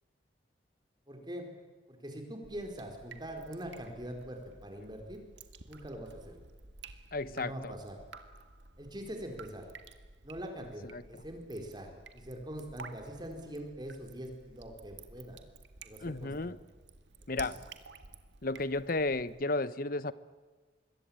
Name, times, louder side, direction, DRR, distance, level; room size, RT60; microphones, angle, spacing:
voice 1, 1.1-1.5 1.9-5.2 5.7-6.3 7.3-8.0 8.8-9.7 10.2-15.4 15.8-16.5 17.3-17.6, right 1 dB, 25° right, 4 dB, 4.6 m, -43 dB
Drip, 2.4-19.4, right 4 dB, 75° right, 2.0 m, -53 dB
voice 2, 7.1-7.7 10.8-11.0 16.0-16.6 17.3-17.6 18.4-20.1, left 2 dB, 50° left, 16 dB, 1.0 m, -33 dB
26.0 x 22.5 x 8.9 m, 1.3 s
head